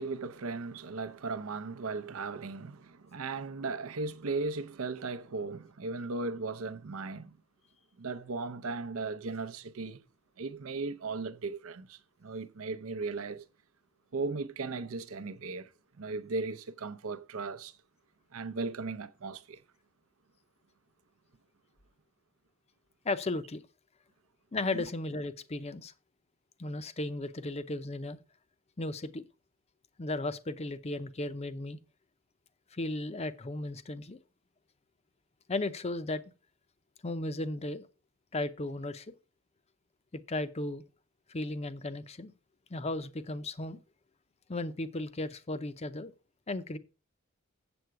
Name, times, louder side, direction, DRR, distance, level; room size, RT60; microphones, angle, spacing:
voice 1, 0.0-7.4 8.0-10.1 10.4-13.4 14.1-15.7 16.0-17.8 18.3-19.6 24.7-24.9, right 3 dB, 70° right, 0.6 m, -37 dB
voice 2, 23.0-23.6 24.5-25.9 26.6-28.2 28.8-29.2 30.0-31.8 32.7-34.2 35.5-36.2 37.0-37.9 38.3-39.1 40.3-40.8 41.3-42.3 42.7-43.8 44.5-46.1 46.5-46.8, left 2 dB, 30° left, 0.6 m, -35 dB
7.9 x 7.6 x 4.7 m
head